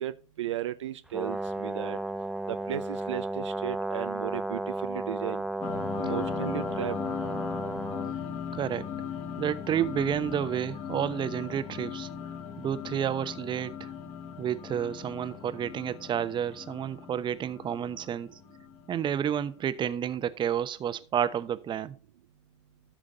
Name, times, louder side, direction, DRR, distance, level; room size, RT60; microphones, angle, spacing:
voice 1, 0.0-2.0 2.5-5.4 6.0-7.0, right 12 dB, 75° right, 0.6 m, -35 dB
Brass instrument, 1.1-8.1, right 2 dB, 5° right, 0.6 m, -33 dB
sound 1, 5.6-19.6, left 8 dB, 40° left, 2.9 m, -38 dB
voice 2, 8.5-8.9 9.4-12.1 12.6-13.9 14.4-18.3 18.9-22.0, right 9 dB, 30° right, 0.9 m, -30 dB
13.5 x 6.3 x 3.7 m
figure-of-eight pair, 80°, 15 cm